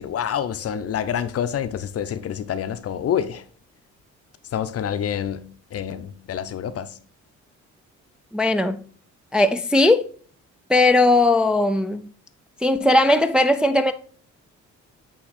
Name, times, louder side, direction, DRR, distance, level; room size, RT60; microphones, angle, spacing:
voice 1, 0.0-3.4 4.5-7.0, left 9 dB, 50° left, 0.6 m, -27 dB
voice 2, 8.3-8.8 9.3-10.0 10.7-12.0 12.6-13.9, left 2 dB, 5° right, 0.4 m, -18 dB
8.6 x 2.9 x 4.2 m
cardioid pair, 90°, 30 cm